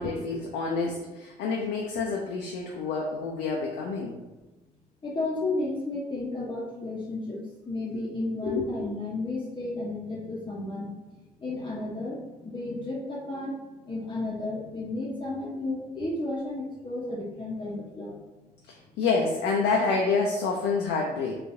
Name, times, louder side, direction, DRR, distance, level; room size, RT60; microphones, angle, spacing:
voice 1, 0.0-4.2 8.4-8.9 18.7-21.4, left 4 dB, 65° left, -1 dB, 0.5 m, -28 dB
voice 2, 5.0-7.4 7.7-10.9 11.4-18.1, left 2 dB, 25° left, -5 dB, 0.7 m, -33 dB
3.9 x 2.4 x 2.6 m, 1.1 s
hypercardioid pair, 50°, 20 cm